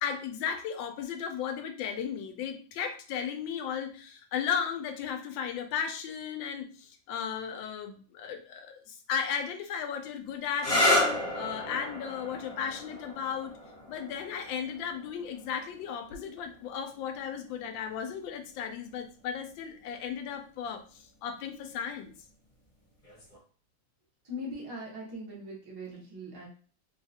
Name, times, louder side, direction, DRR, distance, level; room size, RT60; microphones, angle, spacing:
voice 1, 0.0-10.8 11.3-13.6 13.9-22.1, left 7 dB, 80° left, 6 dB, 1.3 m, -35 dB
sound 1, 10.5-18.0 19.0-19.5 23.0-23.4, left 1 dB, 25° left, 0.8 m, -32 dB
voice 2, 24.2-26.5, left 1 dB, 20° right, -4 dB, 0.6 m, -40 dB
3.7 x 2.4 x 2.7 m, 0.41 s
omnidirectional pair, 2.1 m